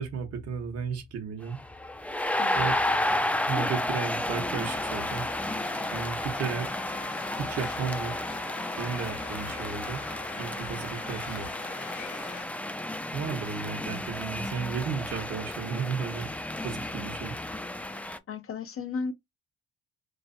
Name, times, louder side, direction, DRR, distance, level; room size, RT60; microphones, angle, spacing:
voice 1, 0.0-1.6 2.5-2.8 3.5-5.2 5.9-6.7 7.4-8.1 8.8-10.0 10.4-11.5 13.1-16.3 16.6-17.3, right 6 dB, 55° right, 1.0 m, -33 dB
sound 1, 1.5-18.2, left 1 dB, 5° left, 0.5 m, -32 dB
voice 2, 2.4-2.7 18.3-19.1, left 5 dB, 50° left, 0.6 m, -34 dB
sound 2, 4.6-12.4, left 8 dB, 80° left, 1.1 m, -45 dB
3.2 x 2.9 x 2.6 m
cardioid pair, 85°, 29 cm